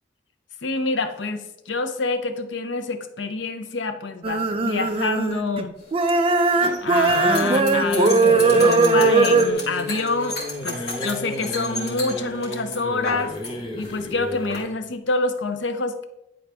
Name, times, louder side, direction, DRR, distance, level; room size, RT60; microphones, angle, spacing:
voice 1, 0.6-5.7 6.8-10.4 10.6-13.3 13.8-16.0, left 3 dB, 80° left, 9 dB, 0.7 m, -27 dB
sound 1, 4.2-5.6 5.9-9.5, right 3 dB, 30° right, 0.4 m, -19 dB
sound 2, 5.8-13.5 13.8-14.6, left 2 dB, 60° left, 2.1 m, -33 dB
sound 3, 7.1-14.8, left 1 dB, 25° left, 0.9 m, -30 dB
9.9 x 3.9 x 3.4 m, 0.85 s
head